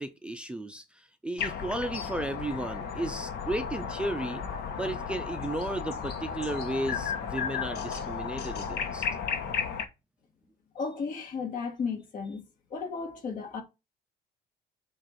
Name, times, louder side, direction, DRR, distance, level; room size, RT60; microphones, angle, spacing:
voice 1, 0.0-4.4 4.8-9.1, right 1 dB, 5° right, 0.5 m, -34 dB
sound 1, 1.4-9.8, left 6 dB, 70° left, 1.1 m, -34 dB
voice 2, 10.7-12.4 12.7-13.6, left 5 dB, 50° left, 1.7 m, -34 dB
7.7 x 2.6 x 5.6 m
cardioid pair, 110°, 17 cm